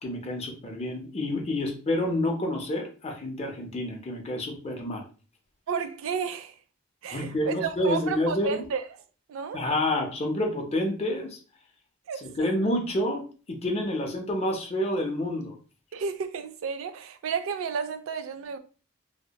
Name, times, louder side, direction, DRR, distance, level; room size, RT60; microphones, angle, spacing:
voice 1, 0.0-5.0 7.1-8.7 9.5-11.4 12.2-15.6, left 1 dB, 30° left, 0.5 m, -28 dB
voice 2, 5.7-6.5 7.0-8.8 9.3-9.6 12.1-12.5 15.9-18.6, right 6 dB, 80° right, 0.3 m, -32 dB
2.7 x 2.1 x 2.2 m
head